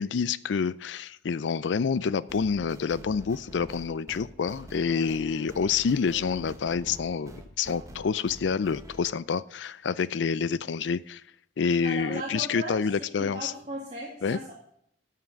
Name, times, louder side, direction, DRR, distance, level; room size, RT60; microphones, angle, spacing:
voice 1, 0.0-11.2 11.6-13.5 14.2-14.4, left 5 dB, 75° left, 0.4 m, -28 dB
sound 1, 2.3-9.0, equal, 15° right, 1.1 m, -46 dB
voice 2, 11.8-12.9 13.2-14.5, right 1 dB, 35° right, 2.1 m, -37 dB
12.0 x 5.9 x 5.2 m
head